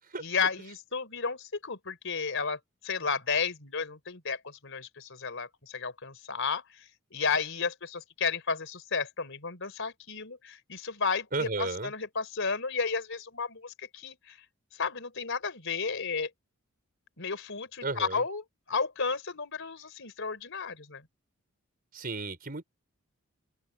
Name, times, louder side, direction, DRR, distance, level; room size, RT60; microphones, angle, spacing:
voice 1, 0.2-14.4 14.7-16.3 17.2-21.1, left 5 dB, 65° left, 3.9 m, -33 dB
voice 2, 11.3-11.9 17.8-18.2 21.9-22.6, right 3 dB, 45° right, 4.6 m, -33 dB
open air
head